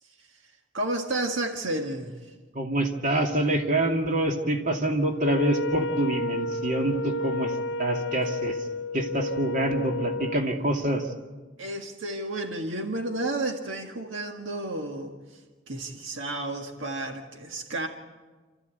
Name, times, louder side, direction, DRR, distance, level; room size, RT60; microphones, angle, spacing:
voice 1, 0.7-2.2 11.6-15.1 15.7-17.9, right 2 dB, 80° right, 3 dB, 1.7 m, -31 dB
voice 2, 2.5-7.5 7.8-8.6 8.9-11.1, right 1 dB, 45° right, 2 dB, 2.5 m, -26 dB
Wind instrument woodwind instrument, 5.2-10.5, left 2 dB, 65° left, 0.9 m, -31 dB
28.5 x 14.0 x 8.2 m, 1.3 s
head